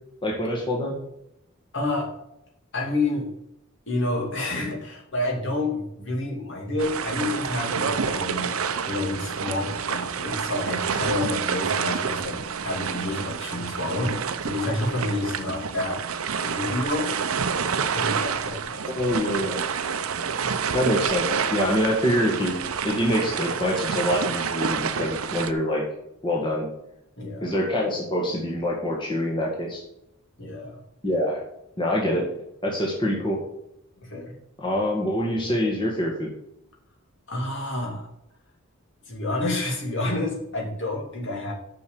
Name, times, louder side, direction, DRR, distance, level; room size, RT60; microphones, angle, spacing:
voice 1, 0.2-1.0 19.0-19.6 20.7-22.5 22.8-25.8 26.2-26.7 27.4-29.8 31.0-31.4 31.8-32.3 32.6-33.4 34.6-36.3, equal, 20° left, -2 dB, 1.8 m, -25 dB
voice 2, 1.7-2.1 2.7-3.3 3.9-8.5 8.9-12.4 12.6-16.0 16.4-17.1 17.9-19.1 20.2-20.4 27.2-27.5 30.4-30.8 34.0-34.3 37.3-38.1 39.1-41.5, left 2 dB, 60° left, -1 dB, 2.7 m, -29 dB
sound 1, 6.8-25.5, right 6 dB, 80° right, 0.6 m, -28 dB
7.0 x 6.3 x 7.0 m, 0.81 s
head